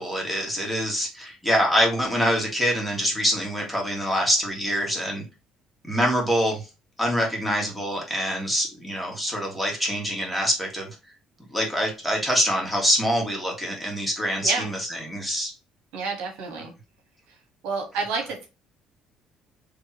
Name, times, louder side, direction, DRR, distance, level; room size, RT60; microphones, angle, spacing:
voice 1, 0.0-5.2 5.8-6.6 7.0-10.9 11.5-15.5, equal, ahead, -1 dB, 2.0 m, -25 dB
voice 2, 15.9-16.7 17.6-18.4, right 4 dB, 80° right, 1 dB, 1.6 m, -29 dB
3.7 x 3.2 x 2.9 m, 0.28 s
supercardioid pair, 70°, 2 cm